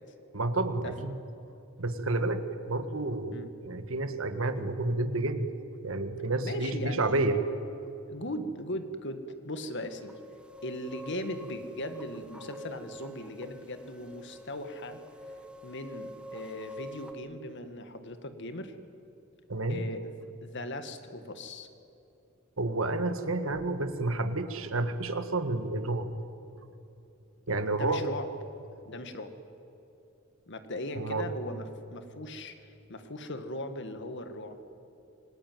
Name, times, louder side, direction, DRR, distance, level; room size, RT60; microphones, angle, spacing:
voice 1, 0.3-1.1 1.8-5.5 5.8-7.4 19.5-19.8 22.6-26.1 27.5-28.0 31.0-31.3, right 2 dB, 70° right, 9 dB, 1.8 m, -30 dB
voice 2, 6.4-7.4 8.1-10.1 10.6-15.0 15.6-18.7 19.7-21.7 27.5-28.3 28.9-29.3 30.5-31.7 31.9-32.5 32.9-34.6, left 1 dB, 60° left, 8 dB, 2.0 m, -38 dB
sound 1, 9.8-17.1, equal, 5° right, 1.6 m, -46 dB
27.0 x 19.5 x 9.4 m, 2.8 s
head